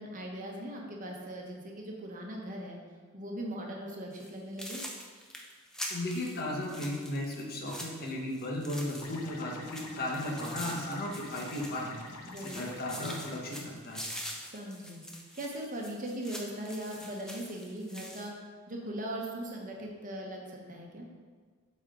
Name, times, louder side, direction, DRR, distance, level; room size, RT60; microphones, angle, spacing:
voice 1, 0.0-2.8 3.1-4.8 12.3-12.6 14.5-21.1, right 1 dB, 35° right, 0 dB, 1.1 m, -40 dB
sound 1, 4.1-4.3 4.6-9.3 9.6-12.1 12.4-18.3, equal, 5° left, 0.7 m, -44 dB
voice 2, 5.9-12.0 12.4-14.0, left 1 dB, 45° left, -1 dB, 1.2 m, -35 dB
sound 2, 9.0-13.4, left 3 dB, 80° left, 0.8 m, -46 dB
8.1 x 4.4 x 3.8 m, 1.5 s
head